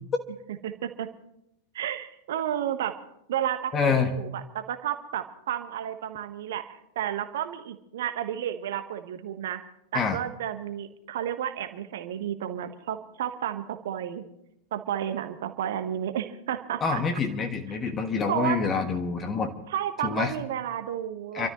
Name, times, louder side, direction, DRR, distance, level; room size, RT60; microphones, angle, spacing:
voice 1, 0.6-1.1 1.7-3.0 3.3-9.6 9.9-14.2 14.7-17.0 18.3-18.6 19.7-21.5, right 10 dB, 55° right, 9 dB, 1.2 m, -32 dB
voice 2, 3.7-4.1 9.9-10.2 16.8-19.5 20.0-20.3 21.3-21.5, left 5 dB, 25° left, 5 dB, 1.4 m, -26 dB
28.5 x 13.0 x 3.1 m, 0.81 s
figure-of-eight pair, 90°, 0 cm